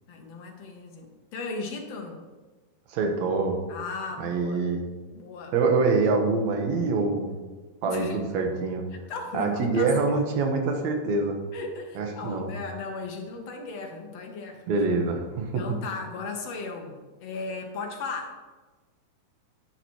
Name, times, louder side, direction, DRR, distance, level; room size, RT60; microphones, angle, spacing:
voice 1, 0.1-2.2 3.7-4.7 5.1-5.6 7.9-8.2 8.9-10.2 11.5-14.6 15.6-18.4, left 4 dB, 60° left, 2 dB, 2.0 m, -36 dB
voice 2, 2.9-3.6 4.2-4.8 5.5-7.4 7.8-8.8 9.3-11.4 12.0-12.5 14.7-15.6, right 3 dB, 65° right, 3 dB, 2.4 m, -25 dB
11.5 x 9.8 x 3.1 m, 1.3 s
omnidirectional pair, 3.7 m